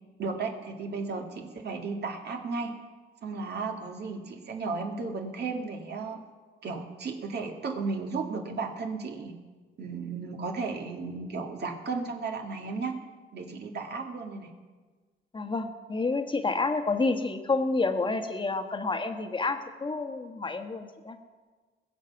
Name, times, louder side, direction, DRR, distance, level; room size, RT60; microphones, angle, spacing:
voice 1, 0.2-2.7 3.2-6.2 6.6-9.3 9.8-13.0 13.3-14.5, right 4 dB, 55° right, 3 dB, 2.0 m, -34 dB
voice 2, 15.3-21.2, left 3 dB, 25° left, 6 dB, 1.3 m, -29 dB
20.5 x 7.5 x 5.8 m, 1.4 s
cardioid pair, 90°, 20 cm